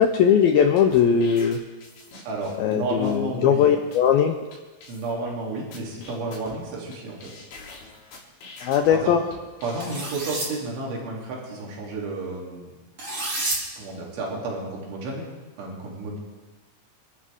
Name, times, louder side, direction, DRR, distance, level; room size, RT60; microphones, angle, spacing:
voice 1, 0.0-1.6 2.6-4.4 8.6-9.2, left 8 dB, 90° left, 5 dB, 2.1 m, -19 dB
sound 1, 0.6-2.7 3.0-3.2 3.6-3.7 3.9-4.1 4.5-4.6 4.8-5.3 5.7-7.0 7.2-8.9 9.3-10.0, left 3 dB, 75° left, 5.5 m, -45 dB
voice 2, 2.3-3.7 4.9-7.3 8.9-9.2 9.6-12.8 13.8-15.3 15.6-16.2, right 2 dB, 90° right, -3 dB, 5.5 m, -31 dB
sound 2, 9.8-10.5 13.0-13.6, right 1 dB, 35° right, 5.1 m, -29 dB
29.0 x 12.5 x 3.6 m, 1.2 s
omnidirectional pair, 5.3 m